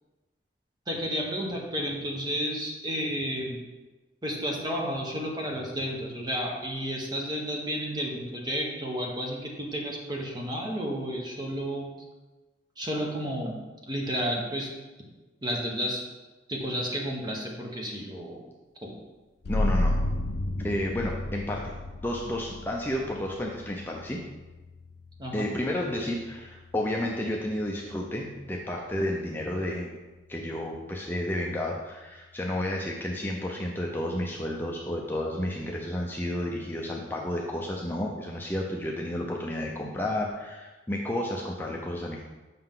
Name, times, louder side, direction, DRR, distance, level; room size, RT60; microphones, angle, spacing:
voice 1, 0.9-3.6 4.2-11.9 12.8-13.6 13.9-14.7 15.4-16.0 16.5-18.4 18.8-18.9 25.2-25.5, equal, 25° right, -1 dB, 1.2 m, -31 dB
sound 1, 19.4-30.7, left 1 dB, 60° left, 0.4 m, -34 dB
voice 2, 19.5-19.9 20.6-21.8 22.0-24.2 25.3-30.0 30.3-42.2, left 1 dB, 10° left, -2 dB, 0.5 m, -31 dB
7.7 x 5.7 x 3.7 m, 1.2 s
head